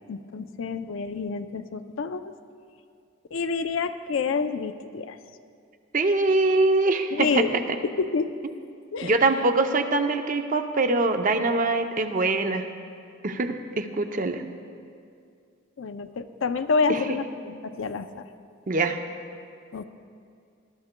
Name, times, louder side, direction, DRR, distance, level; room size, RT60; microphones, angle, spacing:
voice 1, 0.1-2.3 3.3-5.2 7.1-8.3 8.9-9.5 15.8-18.3 19.7-19.8, left 4 dB, 75° left, 9 dB, 0.4 m, -28 dB
voice 2, 5.9-7.4 9.0-12.7 13.2-14.4 16.9-17.0 18.7-19.0, right 3 dB, 40° right, 7 dB, 0.6 m, -23 dB
19.0 x 12.5 x 2.2 m, 2.3 s
head